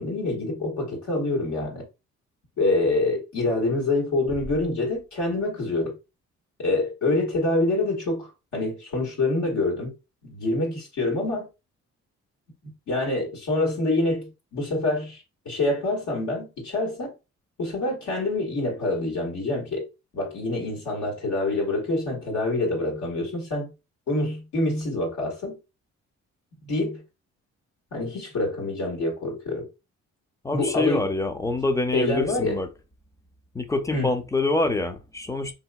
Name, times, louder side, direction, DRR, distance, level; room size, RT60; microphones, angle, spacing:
voice 1, 0.0-1.8 2.6-5.9 6.6-9.9 10.2-11.5 12.6-17.1 17.6-19.8 20.1-23.7 24.1-25.6 26.6-27.0 27.9-29.7 30.5-31.1 31.9-32.6 33.9-34.1, left 2 dB, 75° left, 1.7 m, -26 dB
voice 2, 30.4-32.7 33.5-35.5, left 2 dB, 10° left, 0.5 m, -26 dB
3.8 x 2.7 x 2.2 m
cardioid pair, 90°, 30 cm